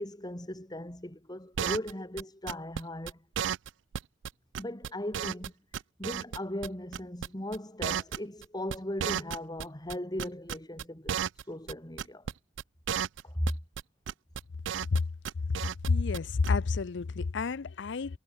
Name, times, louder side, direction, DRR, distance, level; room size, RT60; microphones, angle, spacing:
voice 1, 0.0-3.2 4.6-5.5 6.0-12.3 13.2-13.5, left 1 dB, 20° left, 3.3 m, -38 dB
sound 1, 1.6-2.2 2.5-2.8 3.1-3.2 3.4-3.7 3.9-4.0 4.2-4.3 4.5-5.5 5.7-6.7 6.9-7.3 7.5-9.6 9.9-11.4 11.7-11.8 12.0-12.3 12.6-12.7 12.9-13.2 13.5-13.8 14.1-15.0 15.2-15.9 16.1-16.2 16.4-16.5, right 8 dB, 75° right, 0.4 m, -33 dB
voice 2, 15.8-18.2, left 4 dB, 70° left, 0.5 m, -29 dB
head